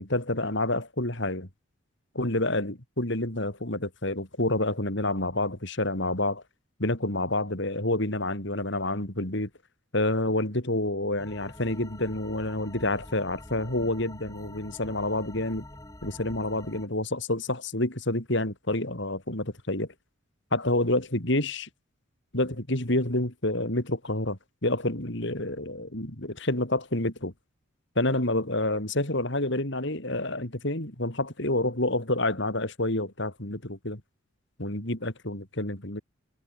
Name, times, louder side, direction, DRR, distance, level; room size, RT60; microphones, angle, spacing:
voice 1, 0.0-1.5 2.2-6.4 6.8-9.5 9.9-15.6 16.0-19.9 20.5-21.7 22.3-27.3 28.0-34.0 34.6-36.0, left 1 dB, 55° left, 3.6 m, -28 dB
sound 1, 11.2-16.9, left 1 dB, 15° left, 3.9 m, -46 dB
head